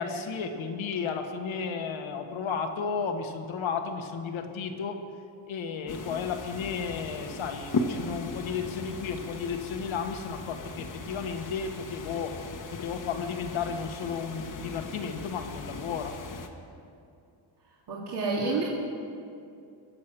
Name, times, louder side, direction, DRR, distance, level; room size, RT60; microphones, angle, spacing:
voice 1, 0.0-5.0 5.5-12.4 12.7-16.1, left 6 dB, 75° left, 5 dB, 1.5 m, -33 dB
sound 1, 5.9-16.5, left 3 dB, 40° left, 1.2 m, -38 dB
voice 2, 17.9-18.6, right 3 dB, 55° right, -6 dB, 2.4 m, -28 dB
22.5 x 7.6 x 6.1 m, 2.5 s
cardioid pair, 145°, 48 cm